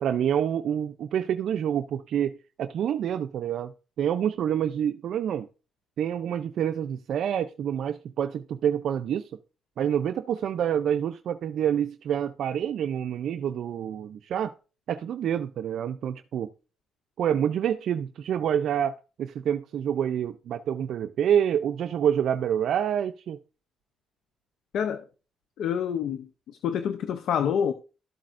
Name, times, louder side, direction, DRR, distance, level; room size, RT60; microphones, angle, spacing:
voice 1, 0.0-3.7 4.0-5.5 6.0-9.3 9.8-14.5 14.9-16.5 17.2-23.4, right 9 dB, 70° right, 0.4 m, -27 dB
voice 2, 24.7-25.0 25.6-27.7, left 8 dB, 75° left, 0.6 m, -27 dB
13.0 x 7.5 x 2.5 m
cardioid pair, 90°, 0 cm